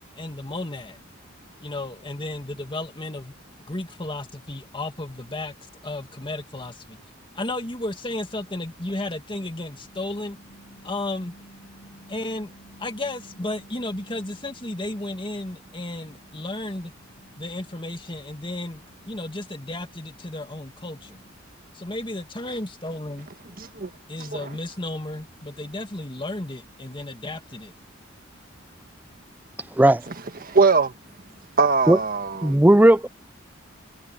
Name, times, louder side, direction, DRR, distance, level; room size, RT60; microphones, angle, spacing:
voice 1, 0.2-1.0 1.6-3.3 3.7-5.5 5.8-7.0 7.3-10.4 10.8-11.3 12.1-12.5 12.8-16.9 17.4-21.2 21.7-23.3 24.1-27.7, left 2 dB, 25° left, 2.2 m, -33 dB
sound 1, 9.7-15.0 15.3-21.6, right 1 dB, 50° left, 4.8 m, -54 dB
voice 2, 23.6-23.9 24.2-24.5 30.4-30.9 31.6-32.6, right 4 dB, 45° right, 1.5 m, -21 dB
voice 3, 32.4-33.1, right 1 dB, 10° right, 0.4 m, -15 dB
head